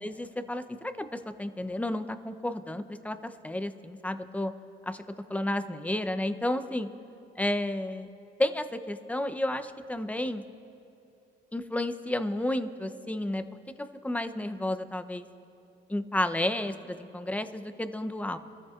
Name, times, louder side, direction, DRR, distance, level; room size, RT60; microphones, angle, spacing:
voice 1, 0.0-4.5 4.8-5.0 5.3-6.9 7.4-8.1 8.4-10.4 11.5-13.4 14.0-15.3 15.9-18.4, left 1 dB, 5° left, 10 dB, 0.6 m, -31 dB
24.5 x 14.0 x 2.5 m, 2.8 s
cardioid pair, 90°, 20 cm